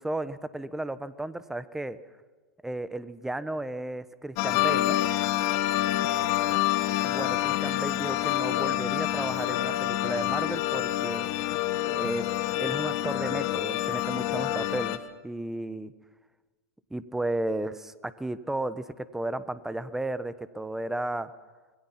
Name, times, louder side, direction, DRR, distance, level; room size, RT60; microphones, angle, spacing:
voice 1, 0.0-2.0 2.6-5.0 7.0-11.2 11.8-12.2 12.6-15.9 16.9-21.3, right 1 dB, 5° right, 14 dB, 1.1 m, -33 dB
sound 1, 4.4-15.0, left 14 dB, 50° left, 1.5 m, -27 dB
26.0 x 22.0 x 5.9 m, 1.3 s
hypercardioid pair, 115°, 9 cm